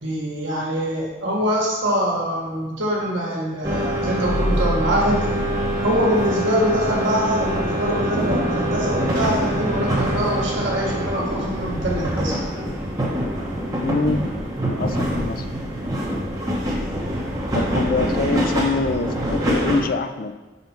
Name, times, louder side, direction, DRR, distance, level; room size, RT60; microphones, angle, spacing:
voice 1, 0.0-5.2 5.8-12.4, equal, 80° right, -3 dB, 1.6 m, -24 dB
sound 1, 3.6-19.8, equal, 20° right, 1.0 m, -24 dB
voice 2, 13.8-14.2 14.8-15.5 17.5-20.3, left 3 dB, 45° left, 9 dB, 0.4 m, -24 dB
5.6 x 4.4 x 5.8 m, 1.2 s
head